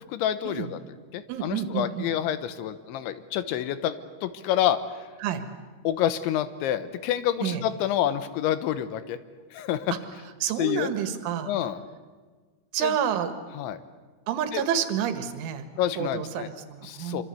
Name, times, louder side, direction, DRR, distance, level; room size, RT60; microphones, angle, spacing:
voice 1, 0.1-0.8 1.1-5.1 5.8-9.2 9.5-9.9 10.6-10.9 11.5-11.8 12.8-13.0 13.5-13.8 14.5-14.6 15.8-16.5 16.8-17.2, left 11 dB, 80° left, 13 dB, 3.3 m, -28 dB
voice 2, 1.3-2.1 5.2-5.4 7.4-7.6 10.4-11.5 12.7-13.3 14.3-15.6 16.0-17.2, right 9 dB, 90° right, 9 dB, 4.1 m, -29 dB
25.0 x 25.0 x 8.4 m, 1.4 s
omnidirectional pair, 5.4 m